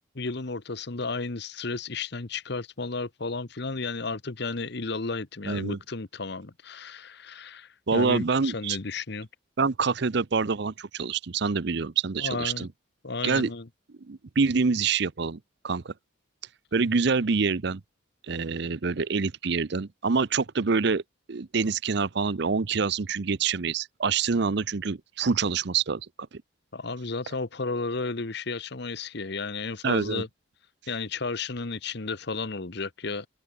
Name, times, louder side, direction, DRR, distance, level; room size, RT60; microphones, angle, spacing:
voice 1, 0.1-9.3 12.2-12.7 13.0-13.7 26.7-30.3 30.9-33.3, left 3 dB, 55° left, 1.1 m, -33 dB
voice 2, 5.5-5.8 7.9-8.8 9.6-12.7 13.2-13.5 14.1-15.4 15.6-15.9 16.7-17.8 18.3-21.0 21.3-26.0 26.3-26.4 29.8-30.2, right 5 dB, 55° right, 0.6 m, -26 dB
head